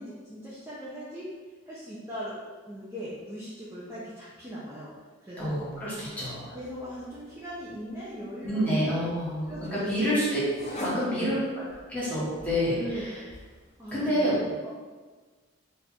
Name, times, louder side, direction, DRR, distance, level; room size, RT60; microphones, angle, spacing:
voice 1, 0.0-1.3 1.7-2.4 2.7-4.9 5.2-5.6 6.0-6.1 6.5-9.1 9.5-10.0 10.9-11.4 12.7-13.1 13.8-14.6, equal, 10° right, -10 dB, 0.6 m, -39 dB
sound 1, 5.4-14.0, left 1 dB, 30° left, 0.8 m, -46 dB
voice 2, 5.4-6.6 8.4-10.4 10.7-11.6 11.9-13.2 13.9-14.3 14.6-14.7, equal, 5° left, -9 dB, 1.4 m, -28 dB
4.3 x 2.6 x 4.3 m, 1.4 s
head